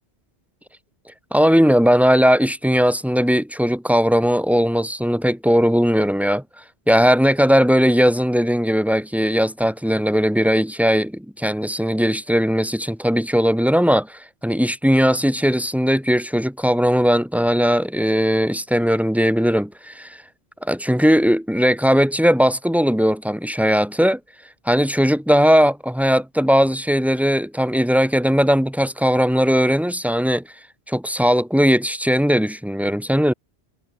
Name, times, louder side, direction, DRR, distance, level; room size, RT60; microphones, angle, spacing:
voice 1, 1.3-6.4 6.9-20.2 20.6-24.2 24.7-30.4 30.9-33.3, equal, ahead, 1.3 m, -18 dB
omnidirectional pair, 1.1 m